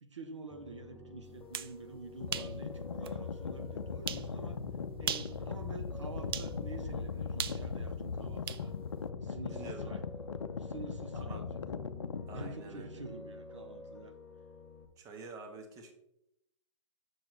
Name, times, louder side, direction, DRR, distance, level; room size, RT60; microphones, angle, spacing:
voice 1, 0.0-4.6 5.0-8.7 9.2-10.0 10.6-11.5 12.3-14.1, right 3 dB, 70° right, 6 dB, 1.0 m, -47 dB
Piano, 0.5-14.9, left 2 dB, 10° left, 1.1 m, -51 dB
sound 1, 1.3-1.7 2.3-2.5 3.1-3.2 4.1-4.3 5.0-5.4 6.3-6.5 7.4-8.7, right 9 dB, 50° right, 0.5 m, -37 dB
sound 2, 2.2-12.5, left 5 dB, 65° left, 0.6 m, -39 dB
voice 2, 9.5-10.0 11.1-11.4 12.3-12.9 15.0-15.9, right 4 dB, 20° right, 4 dB, 1.2 m, -47 dB
8.7 x 6.4 x 3.2 m, 0.83 s
figure-of-eight pair, 120°, 16 cm